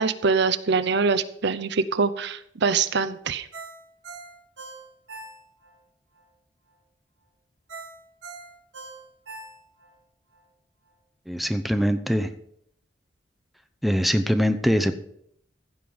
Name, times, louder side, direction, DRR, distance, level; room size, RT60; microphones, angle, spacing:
voice 1, 0.0-3.5, right 5 dB, 65° right, 11 dB, 0.7 m, -24 dB
Ringtone, 3.5-5.8 6.2-6.3 7.7-9.9 10.3-10.4, right 3 dB, 90° right, 3.5 m, -41 dB
voice 2, 11.3-12.3 13.8-14.9, equal, ahead, 9 dB, 0.7 m, -22 dB
15.5 x 5.3 x 7.8 m, 0.72 s
head